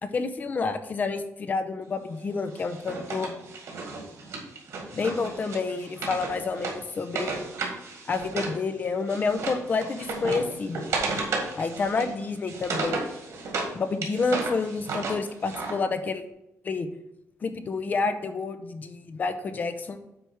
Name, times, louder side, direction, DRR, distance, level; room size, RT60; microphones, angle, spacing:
voice 1, 0.0-3.3 4.9-7.4 8.1-10.9 11.6-13.0 13.7-16.2 16.6-16.9 17.4-20.0, left 4 dB, 35° left, 9 dB, 0.6 m, -29 dB
Wood, 2.5-8.6 8.9-13.7 14.0-15.7, right 3 dB, 65° right, 1.9 m, -33 dB
8.8 x 3.5 x 6.3 m, 0.88 s
wide cardioid pair, 180°, 5 cm